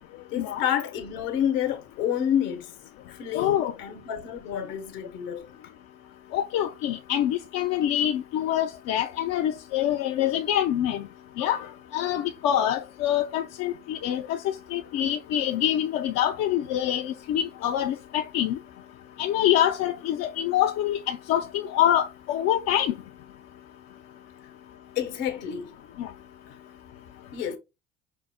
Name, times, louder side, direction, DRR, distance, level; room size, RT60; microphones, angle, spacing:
voice 1, 0.1-2.7 3.1-5.5 24.9-25.7 26.5-26.6 27.3-27.6, left 9 dB, 70° left, 1.2 m, -29 dB
voice 2, 3.3-3.7 6.3-11.0 11.4-11.7 11.9-14.4 14.7-18.6 19.2-22.9 26.0-26.1, left 11 dB, 55° left, 0.6 m, -25 dB
5.5 x 2.1 x 3.6 m
hypercardioid pair, 80°, 30 cm